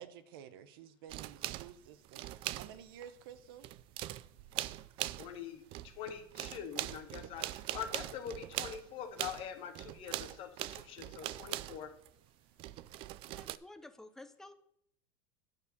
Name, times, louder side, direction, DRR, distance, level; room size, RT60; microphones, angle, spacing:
voice 1, 0.0-3.7, right 9 dB, 80° right, 13 dB, 0.8 m, -52 dB
sound 1, 1.1-3.1 3.4-5.4 5.7-12.1 12.6-13.6, right 16 dB, 50° right, 0.4 m, -41 dB
voice 2, 5.0-11.9, left 8 dB, 50° left, 7 dB, 1.3 m, -44 dB
voice 3, 13.3-14.6, left 2 dB, 5° left, 9 dB, 0.6 m, -52 dB
9.8 x 4.6 x 6.7 m, 0.71 s
supercardioid pair, 130°, 12 cm